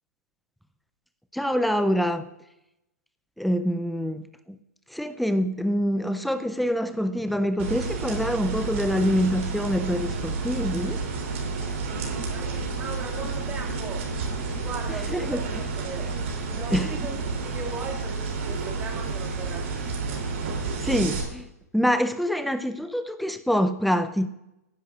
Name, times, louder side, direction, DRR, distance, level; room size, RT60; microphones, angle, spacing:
voice 1, 1.3-2.3 3.4-4.6 4.9-11.0 15.1-15.4 16.7-16.9 20.8-21.5 21.7-24.3, equal, ahead, 10 dB, 0.5 m, -25 dB
sound 1, 7.6-21.2, right 4 dB, 50° right, 3.0 m, -30 dB
voice 2, 12.3-14.1 14.6-20.3, right 3 dB, 15° right, 0 dB, 2.2 m, -38 dB
18.0 x 10.0 x 2.5 m, 0.91 s
hypercardioid pair, 125°, 9 cm